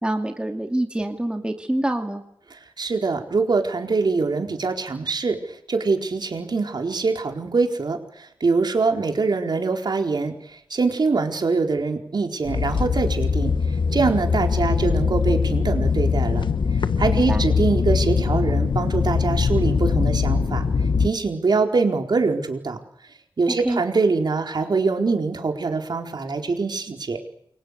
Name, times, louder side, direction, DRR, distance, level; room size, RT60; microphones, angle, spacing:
voice 1, 0.0-2.2 17.1-17.4 23.6-23.8, right 1 dB, 10° right, 4 dB, 2.5 m, -26 dB
voice 2, 2.5-13.5 13.9-16.4 17.0-20.6 21.0-22.8 23.4-27.2, right 4 dB, 55° right, 3 dB, 4.5 m, -23 dB
sound 1, 12.4-21.1, left 5 dB, 65° left, 1.5 m, -22 dB
29.0 x 23.5 x 6.8 m, 0.73 s
wide cardioid pair, 95°, 9 cm